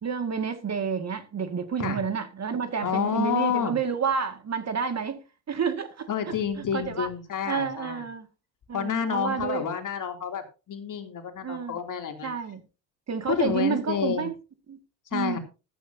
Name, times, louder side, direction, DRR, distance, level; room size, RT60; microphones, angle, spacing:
voice 1, 0.0-5.2 5.5-6.4 6.7-7.1 7.5-8.3 8.7-9.7 11.4-11.8 12.2-12.6 13.1-14.3 14.7-14.8 15.1-15.4, right 6 dB, 35° right, 2.2 m, -29 dB
voice 2, 2.8-3.8 6.1-8.0 8.7-12.3 13.3-14.3 15.1-15.4, left 8 dB, 40° left, 3.1 m, -29 dB
14.0 x 13.0 x 2.9 m
hypercardioid pair, 75°, 46 cm